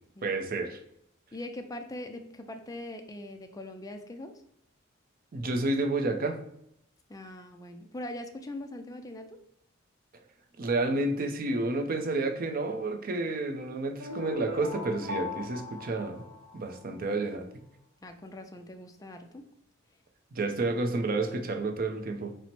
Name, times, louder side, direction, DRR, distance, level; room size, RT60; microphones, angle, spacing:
voice 1, 0.2-0.8 5.3-6.4 10.6-16.2 16.5-17.5 20.3-22.3, right 2 dB, 45° right, 5 dB, 0.5 m, -30 dB
voice 2, 1.3-4.3 7.1-9.4 18.0-19.4, left 1 dB, 15° left, 6 dB, 0.4 m, -41 dB
sound 1, 14.0-17.0, left 2 dB, 80° right, 0.9 m, -38 dB
4.4 x 2.1 x 4.1 m, 0.75 s
head